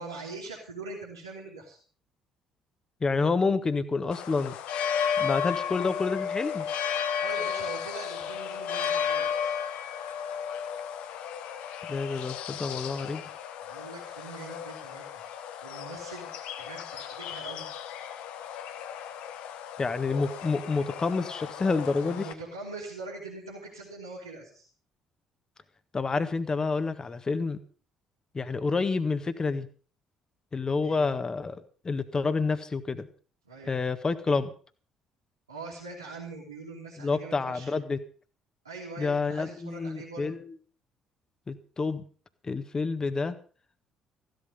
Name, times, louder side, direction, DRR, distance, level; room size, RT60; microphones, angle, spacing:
voice 1, 0.0-1.8 6.9-9.6 13.6-15.2 15.6-16.3 16.6-17.7 22.0-24.7 30.8-31.1 33.4-33.7 35.5-37.8 38.6-40.3, right 3 dB, 85° right, -6 dB, 2.8 m, -42 dB
voice 2, 3.0-4.5 5.2-6.7 11.9-13.3 19.8-22.3 25.9-27.6 28.3-29.7 30.5-31.6 31.8-33.1 33.7-34.5 37.0-38.0 39.0-40.4 41.5-42.0 42.4-43.3, left 4 dB, 30° left, 11 dB, 1.6 m, -28 dB
sound 1, 4.1-22.3, left 8 dB, 65° left, 1.2 m, -34 dB
15.5 x 12.0 x 5.5 m, 0.41 s
figure-of-eight pair, 50°, 2 cm